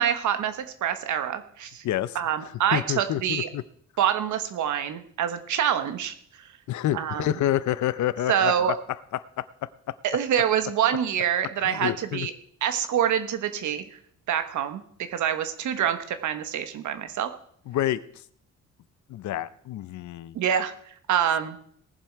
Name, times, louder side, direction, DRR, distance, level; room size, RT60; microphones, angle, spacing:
voice 1, 0.0-1.8 2.1-3.5 4.0-6.5 6.9-7.3 8.3-8.7 10.0-12.3 12.6-14.0 14.3-14.8 15.1-17.3 20.3-20.7 21.1-21.6, right 9 dB, 80° right, 10 dB, 1.4 m, -26 dB
voice 2, 1.8-3.6 6.7-8.7 9.4-10.0 11.6-12.3 17.7-18.2 19.1-20.4, left 13 dB, 80° left, 17 dB, 0.7 m, -28 dB
19.0 x 7.5 x 4.7 m, 0.64 s
cardioid pair, 165°, 29 cm